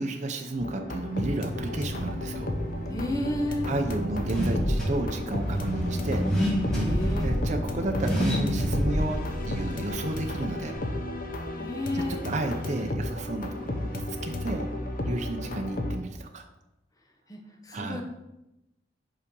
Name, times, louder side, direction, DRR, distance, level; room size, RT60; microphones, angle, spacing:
voice 1, 0.0-2.5 3.6-6.2 7.2-10.8 11.9-14.7 15.1-16.5 17.7-18.0, right 2 dB, 40° right, 4 dB, 0.6 m, -32 dB
sound 1, 0.6-16.0, left 1 dB, 50° left, 0.8 m, -33 dB
Car / Accelerating revving vroom, 1.6-10.7, equal, 5° left, 2.1 m, -30 dB
voice 2, 2.9-3.7 4.3-4.4 6.7-7.3 11.5-12.3 17.3-18.0, left 1 dB, 20° left, 2 dB, 0.9 m, -32 dB
5.5 x 4.8 x 5.3 m, 0.93 s
head